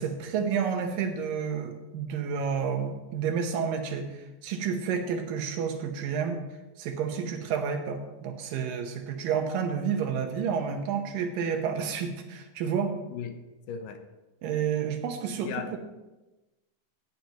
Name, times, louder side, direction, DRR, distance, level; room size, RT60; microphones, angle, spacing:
voice 1, 0.0-6.4 6.8-12.9 14.4-15.8, right 6 dB, 85° right, 5 dB, 2.8 m, -30 dB
voice 2, 13.1-13.4 13.7-14.0 15.4-15.8, left 7 dB, 80° left, 7 dB, 2.5 m, -36 dB
16.5 x 9.0 x 3.0 m, 1.1 s
omnidirectional pair, 3.9 m